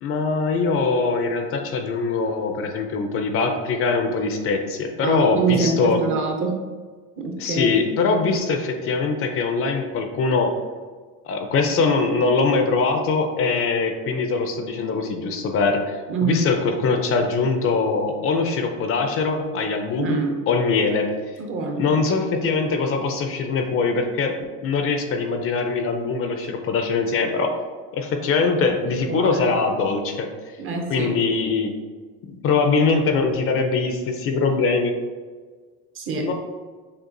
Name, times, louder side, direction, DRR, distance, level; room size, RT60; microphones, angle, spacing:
voice 1, 0.0-6.0 7.4-10.5 11.2-21.1 21.8-27.5 27.9-30.3 30.9-31.7 32.3-34.9 36.2-36.3, left 4 dB, 40° left, 5 dB, 0.5 m, -22 dB
voice 2, 5.0-6.6 7.2-7.7 16.1-16.5 19.9-20.4 21.4-21.9 29.0-29.5 30.6-31.1 35.9-36.3, right 4 dB, 35° right, 2 dB, 0.7 m, -25 dB
6.5 x 2.4 x 2.6 m, 1.5 s
supercardioid pair, 120°, 35 cm